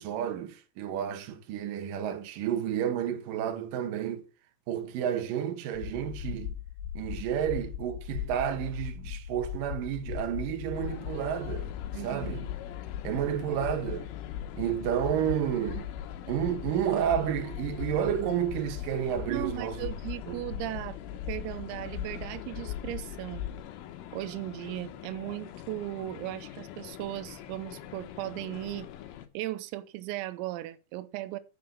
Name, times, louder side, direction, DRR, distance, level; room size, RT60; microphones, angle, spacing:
voice 1, 0.0-4.2 4.7-6.5 6.9-11.7 12.0-12.5 13.0-14.1 14.5-15.9 16.3-19.9 20.3-20.4, right 9 dB, 70° right, 2.1 m, -31 dB
sound 1, 5.7-23.6, left 10 dB, 60° left, 3.8 m, -39 dB
sound 2, 10.7-29.3, left 11 dB, 80° left, 3.5 m, -45 dB
voice 2, 11.9-12.3 19.3-21.0 21.3-23.5 24.1-28.9 29.4-31.4, right 16 dB, 90° right, 3.5 m, -37 dB
8.2 x 6.6 x 6.7 m
omnidirectional pair, 5.9 m